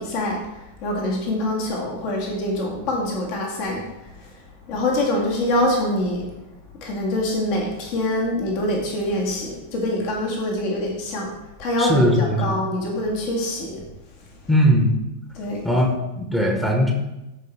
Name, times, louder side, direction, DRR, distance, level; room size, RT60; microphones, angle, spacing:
voice 1, 0.0-4.4 4.7-6.3 6.8-11.3 11.6-13.8 15.3-15.7, left 1 dB, 45° left, -1 dB, 1.8 m, -25 dB
voice 2, 11.8-12.5 14.5-15.0 15.6-16.9, equal, 5° left, 1 dB, 1.2 m, -19 dB
13.5 x 4.9 x 3.2 m, 0.99 s
figure-of-eight pair, 90°, 0 cm